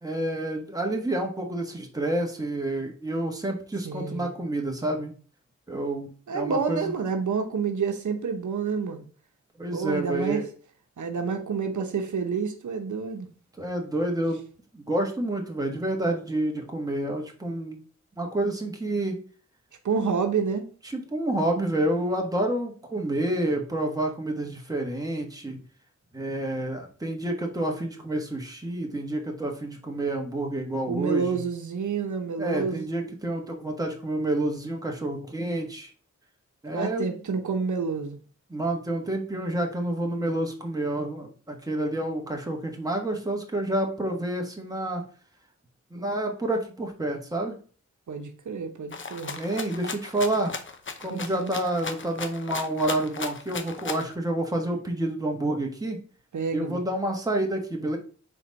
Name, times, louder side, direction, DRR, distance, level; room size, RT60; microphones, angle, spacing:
voice 1, 0.0-5.1 5.7-6.9 9.6-10.4 13.6-14.4 14.7-17.8 18.2-19.2 20.8-25.6 26.1-31.4 32.4-35.9 36.6-37.2 38.5-45.0 45.9-47.5 49.4-50.5 51.0-56.0 56.5-58.0, right 1 dB, 10° right, 1.3 m, -29 dB
voice 2, 3.8-4.3 6.3-9.0 9.7-10.4 11.0-13.3 19.8-20.7 30.9-32.9 36.7-38.2 48.1-49.4 51.1-51.5 56.3-56.8, right 5 dB, 80° right, 0.9 m, -29 dB
Rattle (instrument), 48.9-54.1, left 4 dB, 40° left, 0.7 m, -36 dB
4.4 x 4.1 x 5.2 m
wide cardioid pair, 115°, 29 cm